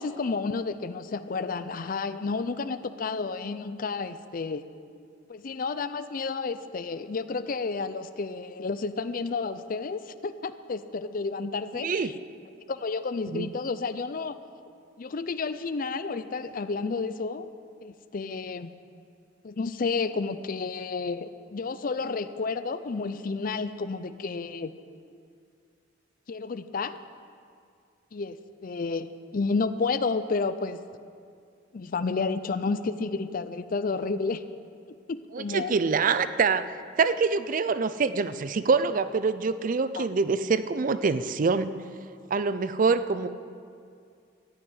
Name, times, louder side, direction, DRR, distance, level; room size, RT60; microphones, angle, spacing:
voice 1, 0.0-4.6 5.3-12.1 12.7-14.4 15.0-17.5 17.8-18.7 19.4-24.7 26.3-27.0 28.1-28.4 28.6-29.1 29.3-30.8 31.7-34.4 35.1-35.8 40.0-40.1, left 4 dB, 45° left, 13 dB, 0.5 m, -31 dB
voice 2, 35.3-36.7 37.0-41.7 42.3-43.3, right 4 dB, 45° right, 13 dB, 0.4 m, -25 dB
14.0 x 6.2 x 9.6 m, 2.3 s
head